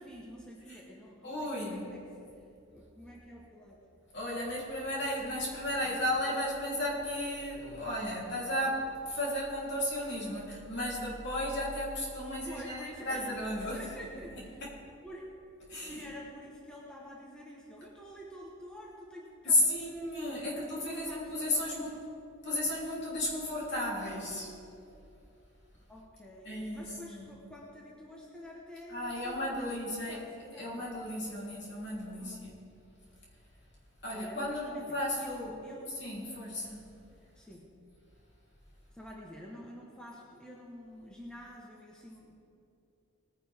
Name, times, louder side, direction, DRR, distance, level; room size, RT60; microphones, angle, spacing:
voice 1, 0.0-2.3 2.7-3.8 5.8-6.2 12.4-13.3 13.6-14.6 15.0-15.3 15.9-19.9 20.4-22.0 25.9-30.9 32.2-32.5 34.1-36.2 37.3-37.7 38.9-42.4, equal, 5° left, -4 dB, 1.1 m, -48 dB
voice 2, 1.2-1.9 4.1-13.8 14.6-14.7 15.7-16.0 19.4-21.9 22.4-24.5 26.4-26.8 27.1-27.4 28.9-30.2 30.6-32.6 34.0-35.5 36.0-36.8, left 1 dB, 50° left, -5 dB, 3.4 m, -34 dB
19.5 x 10.0 x 3.6 m, 2.7 s
head